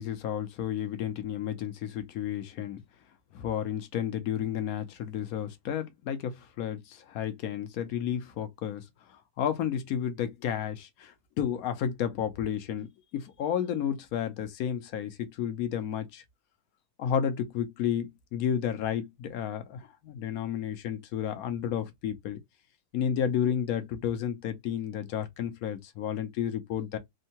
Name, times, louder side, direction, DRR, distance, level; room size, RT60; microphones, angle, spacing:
voice 1, 0.0-2.8 3.3-8.8 9.4-12.9 13.1-16.2 17.0-22.4 22.9-27.0, left 9 dB, 75° left, 1.1 m, -32 dB
3.6 x 2.2 x 2.7 m
omnidirectional pair, 1.6 m